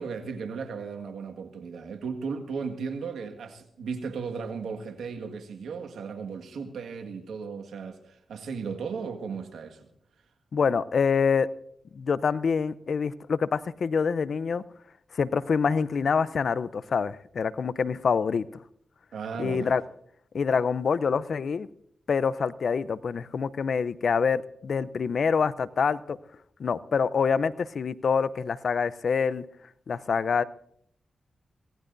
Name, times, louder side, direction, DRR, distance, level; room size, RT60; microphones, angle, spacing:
voice 1, 0.0-9.9 19.1-19.7, right 5 dB, 85° right, 1.8 m, -36 dB
voice 2, 10.5-11.5 11.9-14.6 15.1-18.5 19.4-19.8 20.3-21.7 22.1-26.2 26.6-29.4 29.9-30.4, left 6 dB, 70° left, 0.6 m, -26 dB
25.0 x 17.5 x 2.6 m
supercardioid pair, 45°, 0 cm